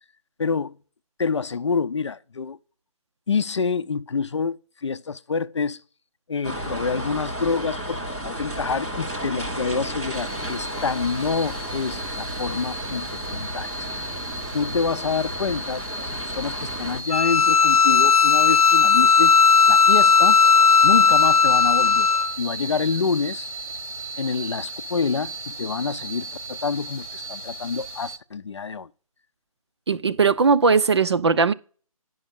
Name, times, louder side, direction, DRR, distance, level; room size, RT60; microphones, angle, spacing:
voice 1, 0.4-0.8 1.2-2.6 3.3-5.8 6.3-8.0 8.2-14.2 14.5-16.1 16.3-19.3 19.7-20.4 20.8-22.1 22.4-23.5 24.2-28.9, left 5 dB, 50° left, 0.6 m, -27 dB
sound 1, 6.4-17.0, right 1 dB, 5° right, 0.4 m, -33 dB
sound 2, 10.1-28.2, right 1 dB, 75° right, 1.2 m, -35 dB
Bowed string instrument, 17.1-22.3, left 5 dB, 80° left, 0.8 m, -16 dB
voice 2, 29.9-31.5, right 5 dB, 50° right, 0.6 m, -19 dB
10.5 x 5.5 x 5.3 m
figure-of-eight pair, 160°, 19 cm